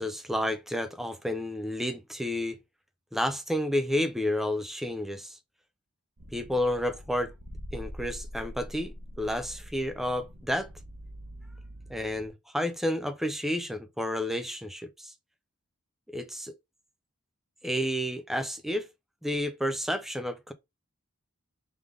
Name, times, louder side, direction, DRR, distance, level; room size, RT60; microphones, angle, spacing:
voice 1, 0.0-2.6 3.1-5.4 6.3-7.3 7.7-10.7 11.9-15.1 16.1-16.5 17.6-18.9 19.2-20.5, left 1 dB, ahead, 0.5 m, -31 dB
sound 1, 6.2-12.3, equal, 75° right, 1.0 m, -44 dB
3.6 x 3.4 x 3.7 m
head